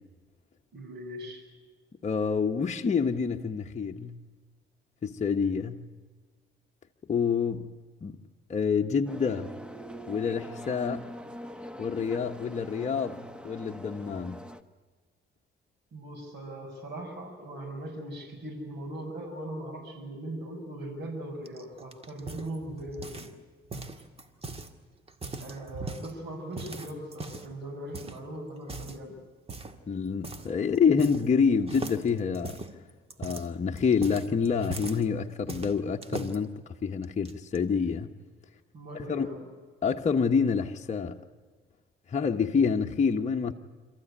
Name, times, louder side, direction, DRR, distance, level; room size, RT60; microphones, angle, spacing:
voice 1, 0.7-1.5 15.9-23.3 25.4-29.2 38.7-39.5, right 1 dB, 60° right, 6.4 m, -39 dB
voice 2, 2.0-4.2 5.0-5.8 7.1-7.7 8.0-8.2 8.5-9.5 10.1-11.0 11.8-14.4 29.9-32.6 33.2-36.5 36.8-38.1 39.1-39.3 39.8-41.2 42.1-43.5, left 6 dB, 35° left, 1.2 m, -27 dB
sound 1, 9.1-14.6, equal, 5° right, 1.2 m, -42 dB
sound 2, 21.5-23.4 23.7-24.7 25.1-26.1 26.6-27.5 27.9-28.2 28.6-29.0 29.5-29.8 30.2-30.5 30.7-31.4 31.7-35.0 35.5-36.4 37.0-37.6, right 3 dB, 30° right, 2.0 m, -40 dB
26.0 x 15.0 x 10.0 m
cardioid pair, 90°, 20 cm